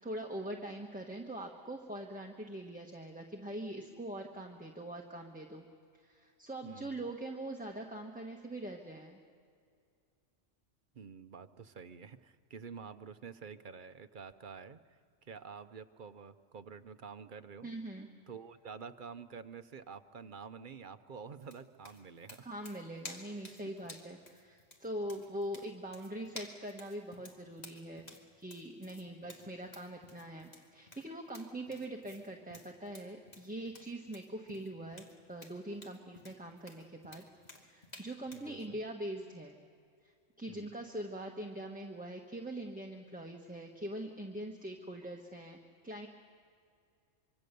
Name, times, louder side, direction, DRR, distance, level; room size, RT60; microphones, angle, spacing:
voice 1, 0.0-5.6 5.9-9.2 17.6-18.1 22.4-28.0 28.4-37.2 37.6-39.6 40.0-45.6 45.8-46.1, right 1 dB, 5° right, 1 dB, 1.2 m, -43 dB
voice 2, 6.6-7.0 10.9-17.7 18.3-22.5 29.4-29.5 38.3-38.8 40.5-40.7, right 6 dB, 50° right, 11 dB, 0.9 m, -49 dB
sound 1, 21.4-38.5, left 1 dB, 35° left, 2.2 m, -53 dB
25.5 x 24.5 x 6.8 m, 2.3 s
omnidirectional pair, 1.2 m